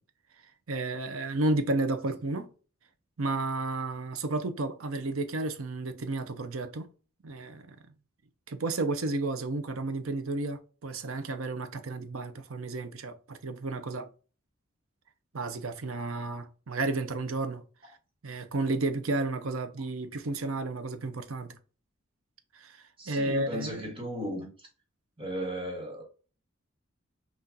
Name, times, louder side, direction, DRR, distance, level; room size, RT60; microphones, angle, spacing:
voice 1, 0.7-2.5 3.2-6.9 7.2-7.8 8.5-14.1 15.3-18.0 18.2-21.6 22.5-23.8, right 2 dB, 85° right, 0.7 m, -32 dB
voice 2, 23.0-24.7 25.2-26.0, right 1 dB, 25° right, 1.4 m, -35 dB
5.9 x 2.5 x 2.6 m
head